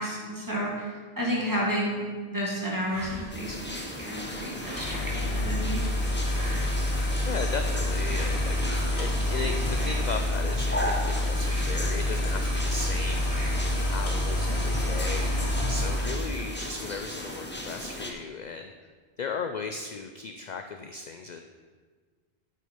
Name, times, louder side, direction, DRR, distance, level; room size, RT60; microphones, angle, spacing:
voice 1, 0.0-5.9, equal, 20° right, -4 dB, 2.2 m, -31 dB
sound 1, 2.8-3.6 4.5-5.3 6.2-7.1 8.0-8.8 9.6-10.4 11.4-12.3 13.2-13.9 14.9-15.6, right 1 dB, 35° right, 1.8 m, -43 dB
sound 2, 3.3-18.1, left 1 dB, 10° left, 0.9 m, -37 dB
sound 3, 4.7-16.2, left 1 dB, 70° left, 1.9 m, -27 dB
voice 2, 6.3-13.6 13.9-18.7 19.2-21.4, left 4 dB, 55° left, 6 dB, 0.6 m, -36 dB
8.6 x 6.4 x 5.4 m, 1.5 s
omnidirectional pair, 1.1 m